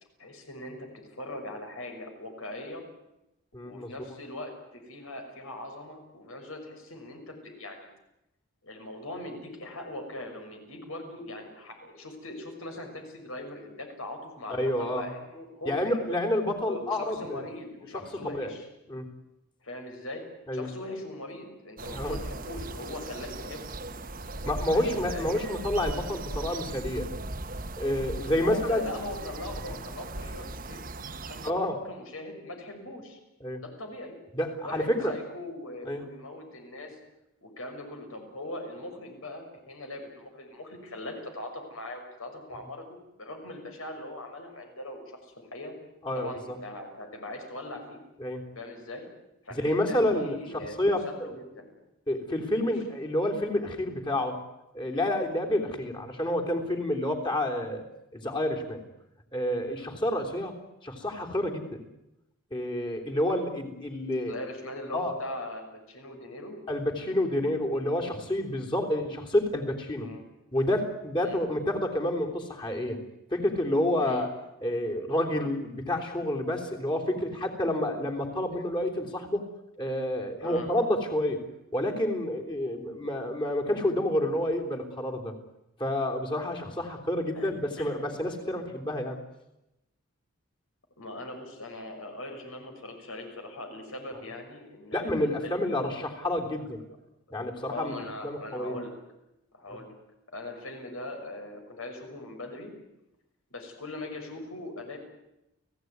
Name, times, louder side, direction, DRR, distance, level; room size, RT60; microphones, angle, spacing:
voice 1, 0.2-2.8 3.6-7.9 8.6-15.9 16.6-18.7 19.6-20.2 20.5-23.7 24.7-25.3 28.4-30.8 31.3-33.2 33.6-34.2 34.6-37.0 37.4-45.7 46.1-48.0 48.5-49.1 49.4-50.8 51.0-51.7 54.9-55.0 64.2-66.6 70.0-70.2 71.2-71.4 74.0-74.2 80.4-80.7 87.3-87.5 87.8-88.2 91.0-95.7 97.7-98.9 99.5-99.9 100.3-102.7 103.5-105.0, left 1 dB, 70° left, 4 dB, 6.3 m, -40 dB
voice 2, 3.5-3.9 14.5-15.1 15.7-17.4 18.2-18.5 18.9-19.1 20.5-20.7 21.9-22.2 24.5-27.1 27.8-28.8 31.4-31.8 33.4-33.6 34.3-35.1 35.8-36.0 46.0-46.6 48.2-48.5 49.5-51.3 52.1-54.4 54.7-57.8 58.1-58.8 59.3-60.6 60.8-61.8 62.5-64.4 64.9-65.1 66.7-70.1 70.5-73.0 73.3-74.3 74.6-79.4 79.8-81.5 81.7-85.3 85.8-89.2 94.9-96.8 97.3-98.0 98.2-98.8, left 1 dB, 20° left, 2 dB, 3.5 m, -29 dB
sound 1, 21.8-31.5, right 2 dB, 40° right, 1.2 m, -38 dB
30.0 x 17.0 x 9.6 m, 0.91 s
head